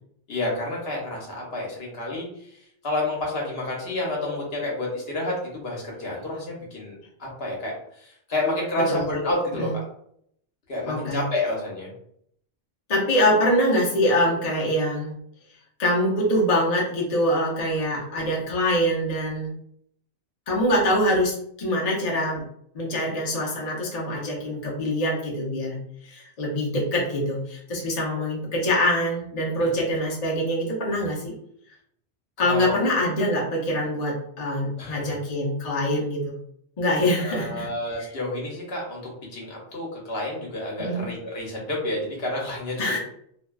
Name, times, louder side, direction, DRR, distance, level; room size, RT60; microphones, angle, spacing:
voice 1, 0.3-2.3 2.8-9.8 10.7-11.9 29.6-29.7 32.4-32.9 34.8-35.2 37.2-43.0, left 1 dB, 60° left, -3 dB, 1.0 m, -29 dB
voice 2, 10.9-11.2 12.9-15.1 15.8-19.5 20.5-22.4 22.7-25.8 26.1-31.3 32.4-36.3 36.8-37.7 38.0-38.1 40.8-41.1 42.8-43.0, equal, 45° left, -3 dB, 0.6 m, -24 dB
2.6 x 2.2 x 2.2 m, 0.69 s
omnidirectional pair, 1.2 m